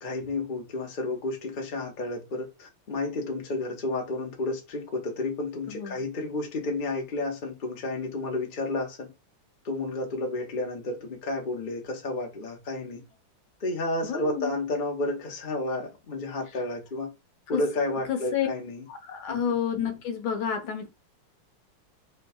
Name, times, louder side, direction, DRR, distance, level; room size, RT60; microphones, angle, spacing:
voice 1, 0.0-9.1 9.6-13.0 13.6-17.1 17.5-18.8 19.3-19.4, left 2 dB, 35° left, 0.9 m, -31 dB
voice 2, 5.7-6.0 14.0-14.5 17.5-17.6 18.1-18.5 18.9-20.9, left 8 dB, 70° left, 1.6 m, -30 dB
3.4 x 3.0 x 4.3 m
omnidirectional pair, 2.4 m